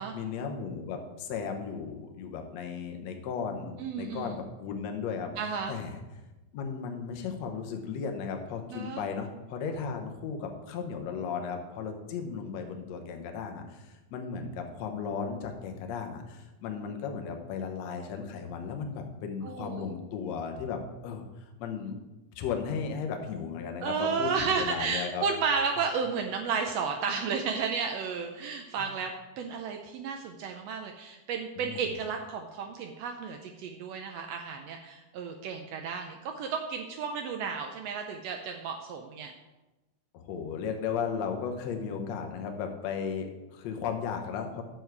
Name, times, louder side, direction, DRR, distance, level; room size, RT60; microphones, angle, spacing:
voice 1, 0.1-5.3 5.7-6.0 6.5-21.2 21.6-22.0 22.4-25.3 28.8-28.9 31.6-31.9 40.1-44.6, left 6 dB, 65° left, 4 dB, 2.0 m, -35 dB
voice 2, 3.8-4.4 5.4-5.7 8.7-9.0 19.4-19.9 23.8-39.3, right 5 dB, 85° right, 4 dB, 1.4 m, -33 dB
10.0 x 7.2 x 4.7 m, 1.1 s
omnidirectional pair, 3.6 m